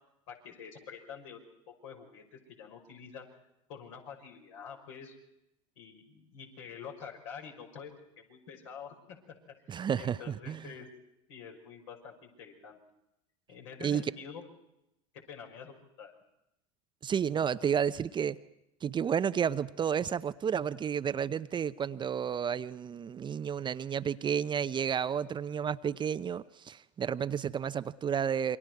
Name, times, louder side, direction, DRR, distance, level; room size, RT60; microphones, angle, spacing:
voice 1, 0.3-1.4 1.7-3.3 3.7-5.2 5.8-7.9 8.2-9.4 10.0-10.9 11.3-12.8 13.5-14.4 15.1-16.1, left 7 dB, 70° left, 1 dB, 5.9 m, -47 dB
voice 2, 9.7-10.6 13.8-14.0 17.0-18.4 18.8-28.6, right 8 dB, 30° right, 13 dB, 0.7 m, -31 dB
28.0 x 23.5 x 4.7 m, 0.84 s
hypercardioid pair, 85°, 17 cm